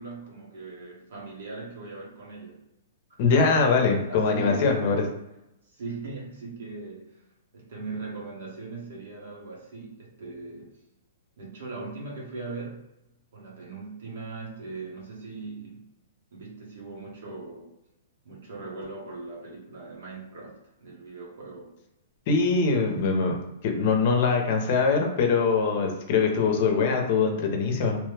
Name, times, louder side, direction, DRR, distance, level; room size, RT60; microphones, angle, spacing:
voice 1, 0.0-2.6 3.3-3.5 4.1-5.0 5.7-7.2 7.5-10.8 11.4-12.9 13.3-15.9 16.3-17.7 18.2-21.7, right 3 dB, 65° right, -2 dB, 1.2 m, -39 dB
voice 2, 3.2-5.0 22.3-23.4 23.6-28.0, left 4 dB, 40° left, 2 dB, 0.7 m, -23 dB
3.1 x 2.2 x 3.3 m, 0.89 s
hypercardioid pair, 165°, 0 cm